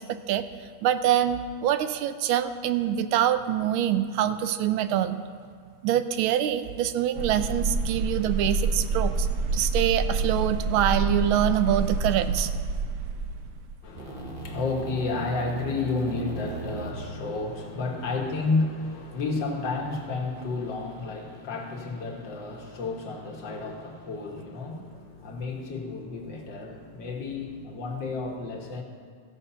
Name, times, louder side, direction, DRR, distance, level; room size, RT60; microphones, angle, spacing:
voice 1, 0.1-0.4 0.8-5.2 5.8-9.3 9.5-12.5, right 11 dB, 90° right, 11 dB, 1.4 m, -25 dB
sound 1, 7.2-13.8, right 3 dB, 65° right, 1.0 m, -28 dB
voice 2, 13.8-28.8, left 3 dB, 65° left, 1 dB, 1.9 m, -31 dB
sound 2, 14.0-19.9, right 4 dB, 35° right, 1.0 m, -40 dB
14.5 x 6.4 x 5.6 m, 2.1 s
omnidirectional pair, 2.2 m